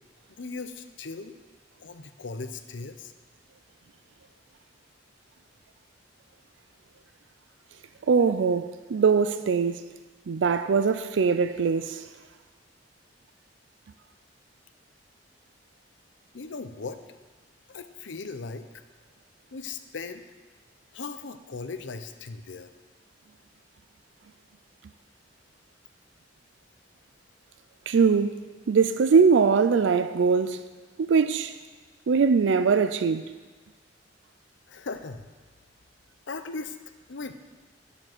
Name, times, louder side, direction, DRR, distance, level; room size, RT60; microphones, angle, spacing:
voice 1, 0.3-1.3 1.8-3.1 16.3-17.0 17.7-18.8 19.5-20.2 20.9-22.7 34.7-35.3 36.3-36.8 37.1-37.3, left 4 dB, 90° left, 0.7 m, -38 dB
voice 2, 8.1-9.9 10.3-12.1 27.9-28.4 28.7-30.6 31.0-31.5 32.1-33.2, right 5 dB, 85° right, 0.4 m, -22 dB
10.0 x 7.1 x 6.1 m
head